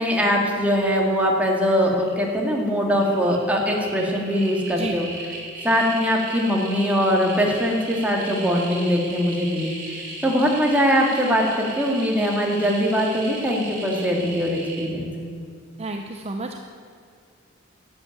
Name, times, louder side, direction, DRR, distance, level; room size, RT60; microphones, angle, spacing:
voice 1, 0.0-5.1 5.6-9.7 10.2-15.1, equal, 5° right, -1 dB, 2.0 m, -21 dB
sound 1, 1.4-1.7 1.9-2.6 2.9-14.8, right 2 dB, 50° right, 4.5 m, -37 dB
voice 2, 4.7-5.0 15.8-16.6, right 2 dB, 30° right, 4 dB, 0.6 m, -31 dB
12.5 x 8.8 x 9.0 m, 2.3 s
head